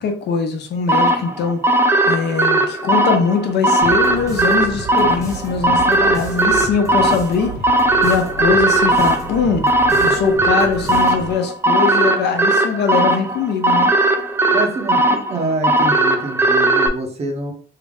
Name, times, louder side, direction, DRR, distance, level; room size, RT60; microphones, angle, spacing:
voice 1, 0.0-1.6 2.1-7.6 8.0-9.7 10.0-13.9, left 5 dB, 60° left, 4 dB, 0.8 m, -21 dB
sound 1, 0.9-16.9, right 2 dB, 10° right, 0.4 m, -17 dB
sound 2, 3.8-11.5, right 1 dB, 15° left, 0.8 m, -32 dB
voice 2, 14.5-17.5, right 2 dB, 35° right, 3 dB, 0.8 m, -25 dB
3.7 x 2.1 x 3.5 m, 0.42 s
cardioid pair, 145°, 20 cm